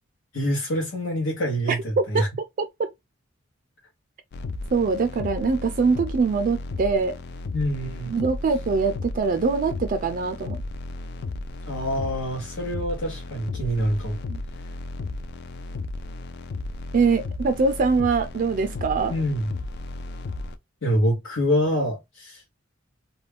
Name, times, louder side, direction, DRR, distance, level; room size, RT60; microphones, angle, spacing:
voice 1, 0.3-2.3 7.5-8.1 11.7-14.2 19.1-19.4 20.8-22.6, equal, 85° left, 0.9 m, -26 dB
voice 2, 1.7-2.3 2.6-2.9 4.7-7.2 8.1-10.6 14.3-14.4 16.9-19.1, right 4 dB, 45° right, 0.3 m, -23 dB
sound 1, 4.3-20.6, left 2 dB, 55° left, 0.3 m, -34 dB
2.4 x 2.2 x 3.3 m
head